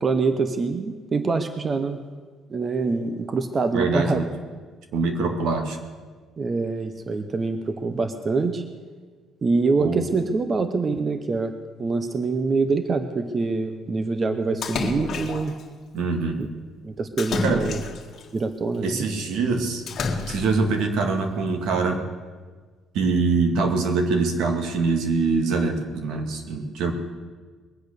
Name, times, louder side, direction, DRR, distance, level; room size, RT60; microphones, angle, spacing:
voice 1, 0.0-2.0 2.5-4.2 6.4-8.6 9.4-11.5 11.8-15.5 16.4-16.5 16.8-17.8 18.3-19.1, right 4 dB, 25° right, 9 dB, 0.7 m, -25 dB
voice 2, 3.7-4.3 4.9-5.8 9.8-10.1 15.9-16.4 17.4-17.7 18.8-19.8 20.3-22.0 22.9-26.9, right 4 dB, 75° right, 5 dB, 2.0 m, -23 dB
Splash splatter, 14.6-15.6 17.2-18.2 19.9-20.7, left 4 dB, 45° left, 1.7 m, -29 dB
21.0 x 8.6 x 6.7 m, 1.5 s
cardioid pair, 160°, 0 cm